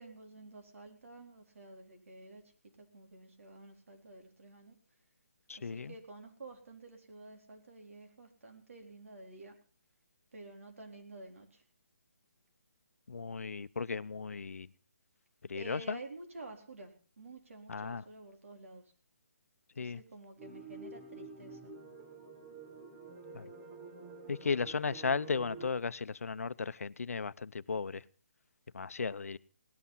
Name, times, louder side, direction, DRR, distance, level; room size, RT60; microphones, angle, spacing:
voice 1, 0.0-4.7 5.6-9.6 10.3-11.6 15.5-18.8 19.8-21.7, right 2 dB, 65° right, 4.1 m, -51 dB
voice 2, 5.5-5.9 13.1-14.7 15.5-16.0 17.7-18.0 19.8-20.0 23.3-23.5 24.3-28.0 28.7-29.4, left 5 dB, 85° left, 0.7 m, -35 dB
sound 1, 20.4-25.7, right 3 dB, 15° right, 1.2 m, -49 dB
17.5 x 11.0 x 5.7 m
hypercardioid pair, 170°, 8 cm